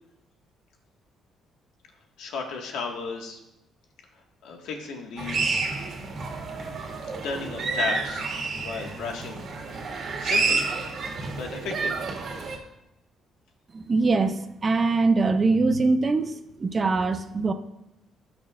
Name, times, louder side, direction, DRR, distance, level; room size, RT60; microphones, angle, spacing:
voice 1, 2.2-3.4 4.4-5.6 7.2-8.2 8.6-9.4 10.2-10.6 11.3-12.0, left 4 dB, 80° left, 2 dB, 1.7 m, -34 dB
sound 1, 5.2-12.6, right 4 dB, 50° right, 1.9 m, -29 dB
voice 2, 13.7-16.3 16.6-17.5, right 3 dB, 30° right, 9 dB, 0.6 m, -22 dB
18.0 x 6.2 x 2.5 m, 0.90 s
cardioid pair, 130°, 0 cm